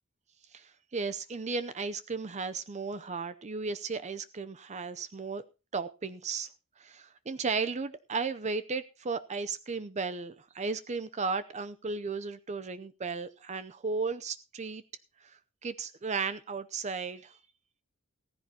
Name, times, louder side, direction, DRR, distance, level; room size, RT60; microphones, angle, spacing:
voice 1, 0.5-5.4 5.7-6.5 6.8-14.8 15.2-17.4, right 4 dB, 30° right, 0.6 m, -35 dB
16.0 x 14.5 x 2.9 m
head